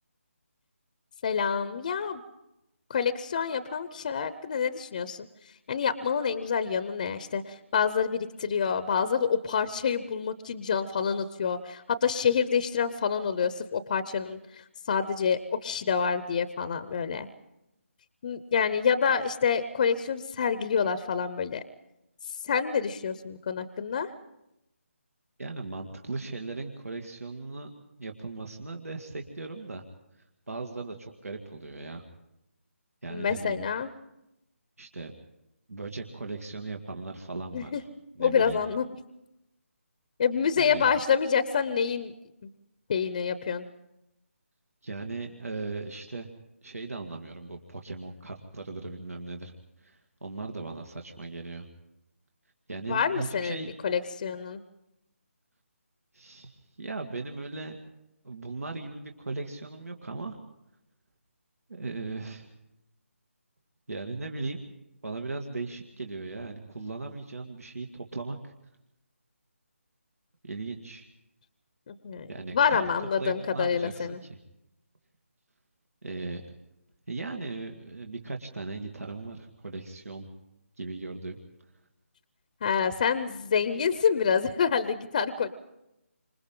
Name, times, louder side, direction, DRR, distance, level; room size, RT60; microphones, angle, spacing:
voice 1, 1.2-2.2 2.9-5.3 5.7-17.3 18.2-21.6 22.4-24.1 33.1-33.9 37.5-37.8 38.2-38.8 40.2-42.1 42.4-42.5 42.9-43.7 52.9-54.6 71.9-74.2 82.6-85.5, left 6 dB, 35° left, 13 dB, 0.8 m, -27 dB
voice 2, 25.4-27.7 28.0-29.8 30.5-32.0 33.0-33.7 34.8-35.1 35.7-37.9 38.1-38.6 40.6-40.8 44.8-46.3 46.6-49.5 49.8-51.7 52.7-53.7 56.1-57.8 58.2-60.4 61.7-62.5 63.9-64.6 65.0-68.5 70.4-71.1 72.3-74.4 76.0-76.4 77.1-80.3 80.8-81.4, right 3 dB, 85° right, 3 dB, 2.4 m, -38 dB
29.5 x 26.0 x 3.8 m, 0.88 s
figure-of-eight pair, 165°, 8 cm